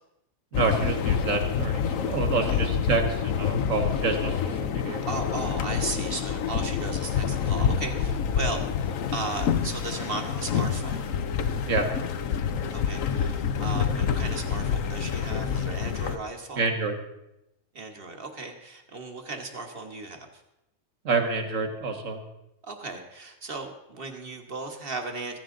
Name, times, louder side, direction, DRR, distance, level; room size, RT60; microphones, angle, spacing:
sound 1, 0.5-16.2, left 7 dB, 80° left, 1.2 m, -27 dB
voice 1, 0.5-5.1 11.7-11.9 16.6-16.9 21.0-22.2, right 4 dB, 70° right, 5 dB, 2.0 m, -28 dB
voice 2, 5.1-11.2 12.7-16.7 17.7-20.4 22.6-25.4, right 3 dB, 45° right, 5 dB, 1.7 m, -36 dB
16.0 x 15.0 x 3.9 m, 0.88 s
omnidirectional pair, 1.4 m